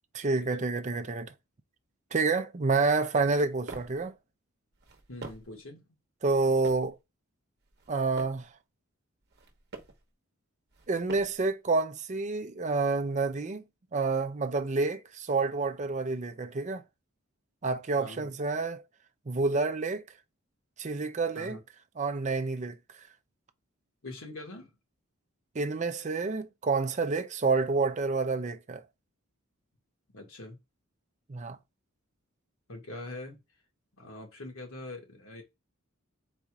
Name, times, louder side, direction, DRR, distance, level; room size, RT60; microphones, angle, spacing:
voice 1, 0.1-1.3 2.1-4.2 6.2-7.0 7.9-8.5 10.9-13.6 13.9-16.8 17.6-18.8 19.3-20.0 20.8-21.6 22.0-22.8 25.5-28.8 31.3-31.6, right 3 dB, 35° right, 0.5 m, -28 dB
sound 1, 3.2-4.0 4.7-5.6 6.3-6.9 7.6-8.5 9.2-10.0 10.7-11.5, right 3 dB, 50° right, 1.0 m, -46 dB
voice 2, 5.1-5.8 18.0-18.3 21.4-21.6 24.0-24.7 30.1-30.6 32.7-33.4 34.0-35.4, left 2 dB, 75° left, 1.8 m, -43 dB
4.1 x 2.6 x 4.6 m
head